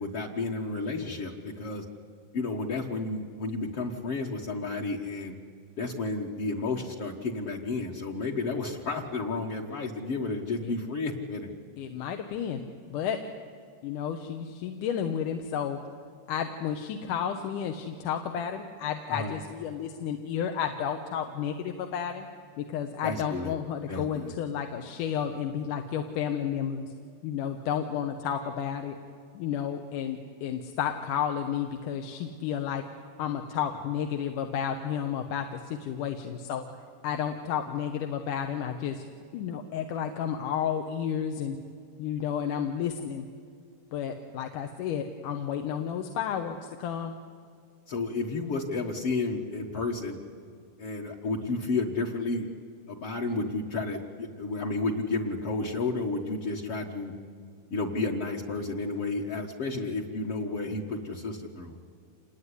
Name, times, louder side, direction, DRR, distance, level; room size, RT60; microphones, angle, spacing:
voice 1, 0.0-1.8 2.3-5.4 5.8-11.5 19.1-19.4 23.0-23.5 23.9-24.3 47.9-50.2 50.8-52.5 52.9-57.1 57.7-61.8, left 3 dB, 50° left, -2 dB, 2.1 m, -31 dB
voice 2, 11.8-12.6 12.9-13.2 13.8-15.8 16.3-22.3 22.6-26.9 27.2-29.0 29.3-32.9 33.2-36.7 37.0-39.1 39.3-41.6 42.0-43.3 43.9-47.1, left 8 dB, 80° left, 5 dB, 2.7 m, -32 dB
27.5 x 20.0 x 9.7 m, 2.2 s
omnidirectional pair, 3.7 m